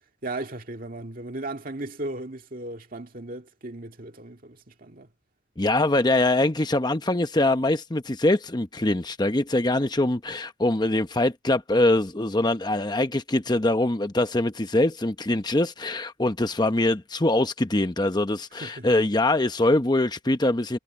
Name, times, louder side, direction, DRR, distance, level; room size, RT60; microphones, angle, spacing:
voice 1, 0.2-5.1 18.5-18.9, right 2 dB, 45° right, 2.0 m, -36 dB
voice 2, 5.6-20.8, left 2 dB, 20° left, 0.8 m, -23 dB
head